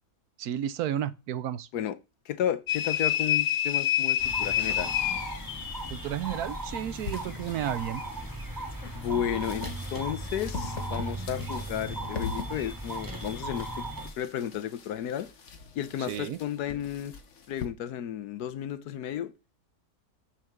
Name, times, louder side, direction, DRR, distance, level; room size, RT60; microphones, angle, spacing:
voice 1, 0.4-1.7 5.9-8.0 16.1-16.4, right 11 dB, 80° right, 1.2 m, -32 dB
voice 2, 2.3-4.9 8.9-13.8 14.2-15.3 15.7-17.1 17.5-19.3, left 10 dB, 90° left, 1.3 m, -33 dB
sound 1, 2.7-6.0, left 11 dB, 70° left, 1.1 m, -27 dB
sound 2, 4.2-14.1, right 1 dB, 15° right, 1.8 m, -37 dB
sound 3, 6.9-17.7, left 5 dB, 55° left, 1.3 m, -42 dB
7.6 x 4.7 x 6.6 m
omnidirectional pair, 1.6 m